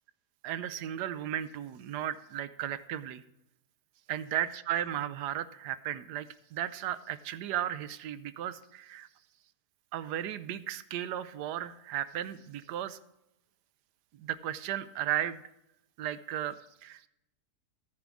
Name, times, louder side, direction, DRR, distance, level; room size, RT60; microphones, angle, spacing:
voice 1, 0.4-3.2 4.1-9.1 9.9-13.0 14.2-15.4 16.0-17.1, right 11 dB, 85° right, 14 dB, 1.2 m, -35 dB
14.5 x 10.0 x 3.5 m, 0.83 s
omnidirectional pair, 1.7 m